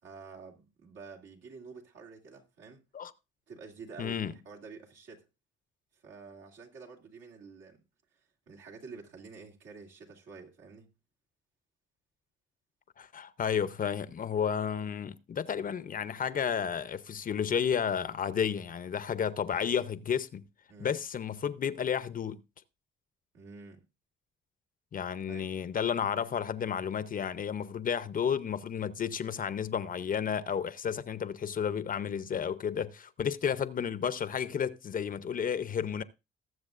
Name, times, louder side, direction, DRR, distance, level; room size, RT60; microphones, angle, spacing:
voice 1, 0.0-2.8 3.5-5.3 5.9-7.8 8.5-10.9 20.7-20.9 23.3-23.8 25.2-25.5, right 4 dB, 70° right, 2.6 m, -49 dB
voice 2, 4.0-4.3 13.0-20.4 20.8-22.4 24.9-36.0, left 7 dB, 45° left, 0.7 m, -32 dB
20.0 x 7.2 x 2.5 m
cardioid pair, 90°, 20 cm